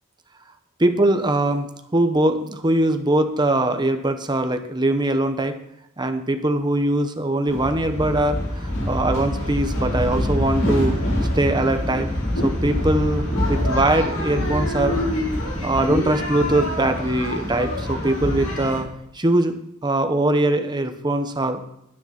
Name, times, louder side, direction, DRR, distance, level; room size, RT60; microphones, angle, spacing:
voice 1, 0.8-1.7 1.9-5.6 6.0-11.0 11.3-12.1 12.4-15.2 15.6-18.9 19.1-19.6 19.8-21.6, right 1 dB, 20° right, 7 dB, 0.9 m, -21 dB
sound 1, 7.5-18.8, left 1 dB, 80° left, 4.3 m, -25 dB
10.0 x 9.7 x 5.9 m, 0.79 s
head